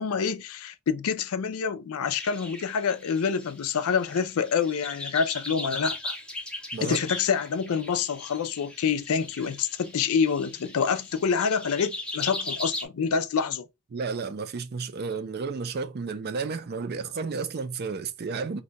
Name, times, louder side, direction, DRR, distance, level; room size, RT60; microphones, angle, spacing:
voice 1, 0.0-6.1 6.8-13.7, left 6 dB, 75° left, 0.4 m, -27 dB
sound 1, 2.1-12.8, left 2 dB, 5° left, 0.5 m, -39 dB
voice 2, 13.9-18.6, right 4 dB, 45° right, 0.4 m, -32 dB
2.7 x 2.2 x 3.9 m
head